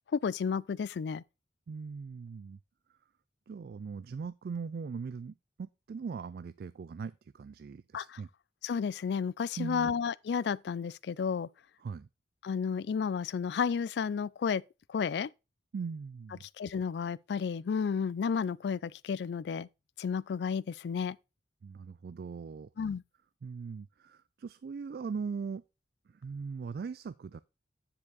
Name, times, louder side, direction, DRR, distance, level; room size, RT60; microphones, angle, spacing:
voice 1, 0.1-1.2 7.9-8.2 8.6-11.5 12.4-14.6 14.9-15.3 16.6-19.7 20.0-21.2 22.8-23.0, left 6 dB, 70° left, 0.3 m, -32 dB
voice 2, 1.7-2.6 3.5-8.3 9.6-9.9 11.8-12.1 15.7-16.4 21.6-22.7 23.4-25.6 26.1-27.4, right 5 dB, 60° right, 0.3 m, -40 dB
9.9 x 4.6 x 3.9 m
head